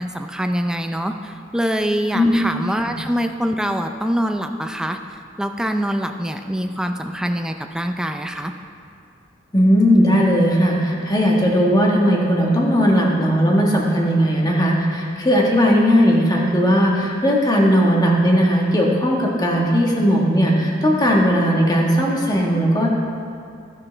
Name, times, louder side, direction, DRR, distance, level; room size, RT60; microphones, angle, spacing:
voice 1, 0.0-5.0 5.4-8.5, equal, 5° right, 5 dB, 0.4 m, -24 dB
voice 2, 9.5-22.9, equal, 20° left, -2 dB, 1.4 m, -17 dB
12.5 x 9.8 x 3.3 m, 2.4 s
head